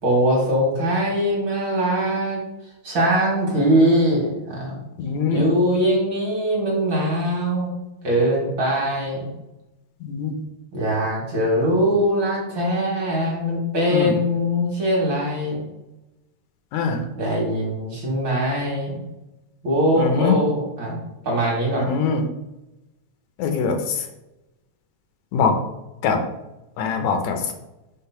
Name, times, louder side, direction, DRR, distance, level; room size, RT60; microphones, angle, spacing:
voice 1, 0.0-2.4 2.8-4.8 5.3-7.7 8.0-9.3 10.7-15.6 17.2-19.0 19.6-21.0 21.2-21.9, equal, 45° right, -4 dB, 2.0 m, -21 dB
voice 2, 5.0-5.5 10.0-10.3 13.9-14.2 16.7-17.0 20.0-20.4 21.8-22.2 23.4-24.1 25.3-25.5 26.0-26.2 26.8-27.5, left 5 dB, 75° left, 4 dB, 2.0 m, -22 dB
5.8 x 3.5 x 5.7 m, 0.97 s
omnidirectional pair, 3.3 m